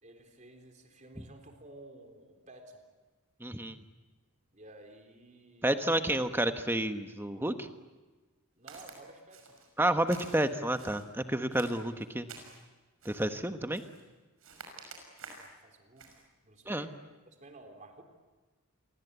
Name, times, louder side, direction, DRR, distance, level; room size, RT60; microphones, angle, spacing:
voice 1, 0.0-2.8 4.5-6.0 8.5-9.6 15.3-17.0 17.2-18.0, right 2 dB, 35° right, 4 dB, 3.8 m, -53 dB
voice 2, 3.4-3.8 5.6-7.7 9.8-12.3 13.0-13.8 16.7-16.9, right 1 dB, 10° right, 8 dB, 1.2 m, -30 dB
Walk footsteps, 8.7-9.0 9.3-9.7 10.1-11.1 11.5-12.6 13.0-13.3 13.7-14.1 14.4-15.5 16.0-16.2, right 4 dB, 75° right, 6.0 m, -50 dB
29.5 x 23.5 x 8.3 m, 1.3 s
head